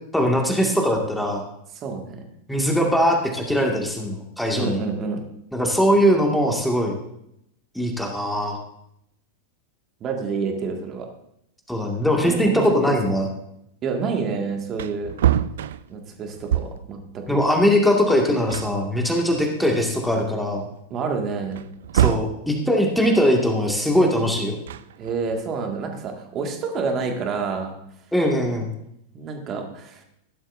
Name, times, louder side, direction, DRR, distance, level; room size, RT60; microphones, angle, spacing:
voice 1, 0.1-1.4 2.5-4.8 5.5-7.0 7.7-8.6 11.7-13.3 17.3-20.7 21.9-24.6 28.1-28.7, equal, ahead, 1 dB, 2.1 m, -21 dB
voice 2, 1.8-2.2 4.5-5.2 10.0-11.1 12.3-12.9 13.8-15.1 15.9-17.4 20.9-21.6 25.0-27.7 29.1-30.0, right 4 dB, 30° right, 3 dB, 2.1 m, -28 dB
Wood, 14.3-14.4 14.7-17.0 18.1-18.2 18.5-19.7 20.2-20.3 21.5-22.4 24.5-25.4, right 11 dB, 60° right, 0.4 m, -25 dB
16.0 x 11.5 x 2.7 m, 0.77 s
figure-of-eight pair, 90°, 0 cm